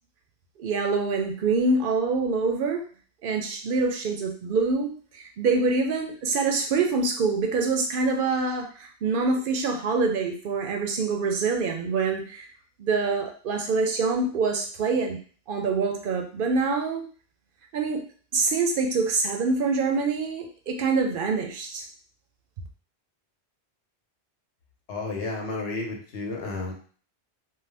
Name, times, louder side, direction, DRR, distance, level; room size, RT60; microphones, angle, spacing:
voice 1, 0.6-2.8 3.2-12.5 12.8-15.2 15.5-17.0 17.7-18.0 18.3-21.8, right 4 dB, 60° right, 3 dB, 0.6 m, -25 dB
voice 2, 24.9-26.7, left 3 dB, 75° left, 0 dB, 1.0 m, -32 dB
2.7 x 2.1 x 3.2 m, 0.43 s
omnidirectional pair, 1.1 m